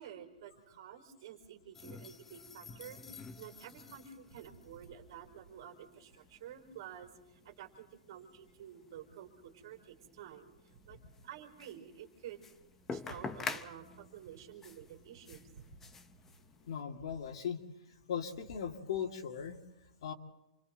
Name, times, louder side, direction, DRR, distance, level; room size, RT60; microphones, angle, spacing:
voice 1, 0.0-12.5 12.9-15.9, right 9 dB, 35° right, 5 dB, 5.2 m, -51 dB
sound 1, 1.7-16.8, left 4 dB, 10° left, 0.6 m, -49 dB
voice 2, 16.7-17.6 18.1-19.6 20.0-20.1, left 8 dB, 50° left, 4 dB, 2.2 m, -38 dB
28.5 x 25.5 x 4.0 m, 0.93 s
hypercardioid pair, 180°, 4 cm